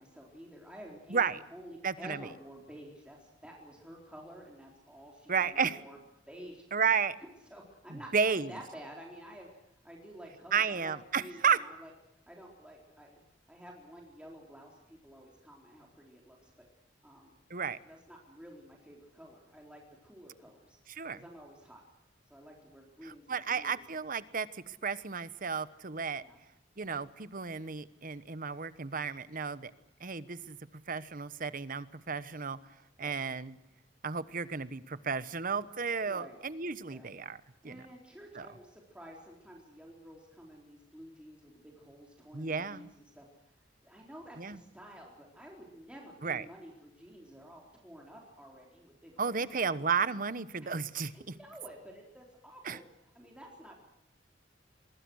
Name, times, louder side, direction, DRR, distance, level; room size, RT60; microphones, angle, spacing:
voice 1, 0.0-1.3 1.5-6.0 6.3-6.6 7.5-11.9 12.3-13.2 13.5-16.5 17.0-17.3 17.9-20.8 21.1-21.8 22.3-23.8 26.2-26.4 33.0-33.2 36.1-36.4 36.9-37.1 37.5-43.3 43.8-49.8 50.6-50.7 51.1-52.8 53.1-53.8, equal, 5° right, -1 dB, 4.1 m, -51 dB
voice 2, 1.8-2.2 5.3-5.8 6.7-7.1 7.9-8.5 10.5-11.6 17.5-17.8 20.9-21.2 23.3-26.2 26.8-29.7 30.0-30.6 30.9-32.6 33.0-33.6 34.0-37.8 38.3-38.5 42.3-42.9 44.4-44.6 46.2-46.4 49.2-51.3 52.6-52.8, right 6 dB, 50° right, 15 dB, 1.1 m, -33 dB
24.5 x 22.5 x 6.4 m, 0.88 s
head